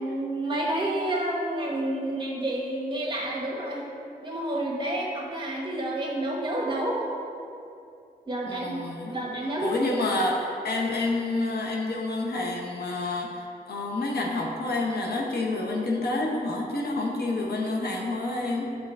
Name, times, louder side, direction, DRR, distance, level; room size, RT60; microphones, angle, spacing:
voice 1, 0.0-3.9 4.2-7.0 8.3-8.8 9.1-9.8, right 1 dB, 30° right, -2 dB, 1.3 m, -29 dB
voice 2, 8.5-9.2 9.6-18.8, left 2 dB, 85° left, -1 dB, 0.9 m, -28 dB
9.0 x 3.7 x 3.5 m, 2.6 s
wide cardioid pair, 85°, 16 cm